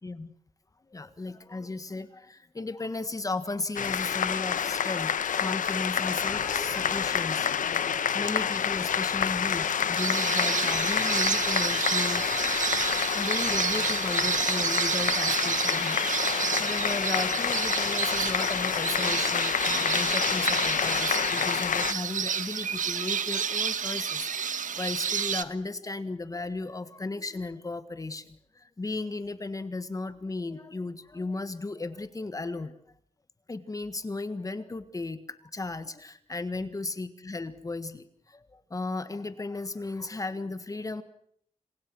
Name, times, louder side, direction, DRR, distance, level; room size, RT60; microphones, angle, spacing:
voice 1, 0.9-7.6 8.0-12.3 13.1-32.7 33.5-35.2 35.5-41.0, left 3 dB, 25° left, 12 dB, 1.6 m, -35 dB
sound 1, 3.8-21.9, left 8 dB, 85° left, 1.2 m, -28 dB
sound 2, 10.0-25.4, right 7 dB, 80° right, 1.5 m, -30 dB
29.0 x 28.0 x 6.3 m, 0.66 s
wide cardioid pair, 140°, 13 cm